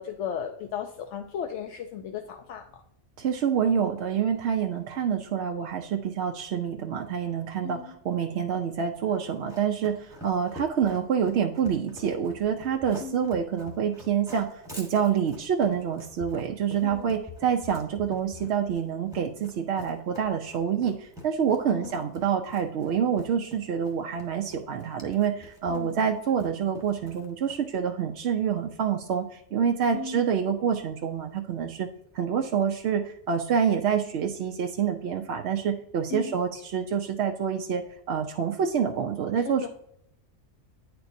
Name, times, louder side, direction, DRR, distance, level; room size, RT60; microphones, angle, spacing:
voice 1, 0.0-2.8 7.6-7.9 13.0-13.3 16.8-17.1 21.7-22.1 25.7-26.0 29.9-30.2 36.1-36.4 39.4-39.7, left 7 dB, 65° left, 4 dB, 0.9 m, -36 dB
voice 2, 3.2-31.9 32.1-39.7, right 7 dB, 65° right, 3 dB, 0.7 m, -27 dB
Run, 9.1-27.8, left 2 dB, 5° right, 1.1 m, -46 dB
9.5 x 4.5 x 2.6 m, 0.73 s
omnidirectional pair, 1.4 m